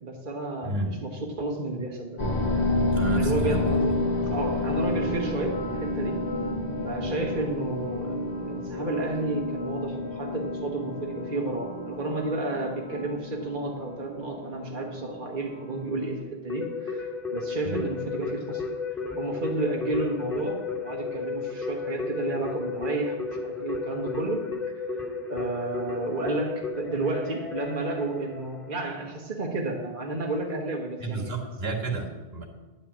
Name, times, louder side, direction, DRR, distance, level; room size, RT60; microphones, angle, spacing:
voice 1, 0.0-2.2 3.1-4.0 4.3-6.2 6.8-18.6 18.9-24.5 25.3-31.3, right 2 dB, 50° right, -1 dB, 1.4 m, -32 dB
voice 2, 0.6-0.9 2.9-4.2 7.0-7.2 17.6-17.9 31.0-32.5, right 3 dB, 70° right, 2 dB, 1.9 m, -31 dB
sound 1, 2.2-16.2, left 2 dB, 40° left, 1.4 m, -30 dB
Keyboard (musical), 16.5-28.9, left 4 dB, ahead, 2.6 m, -33 dB
11.0 x 6.0 x 8.5 m, 1.2 s
omnidirectional pair, 1.1 m